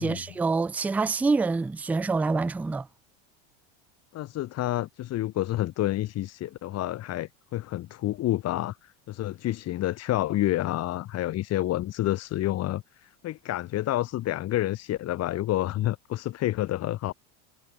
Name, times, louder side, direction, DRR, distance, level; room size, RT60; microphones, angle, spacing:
voice 1, 0.0-2.9, right 4 dB, 5° right, 0.4 m, -26 dB
voice 2, 4.1-17.1, left 14 dB, 45° left, 2.8 m, -29 dB
supercardioid pair, 130°, 37 cm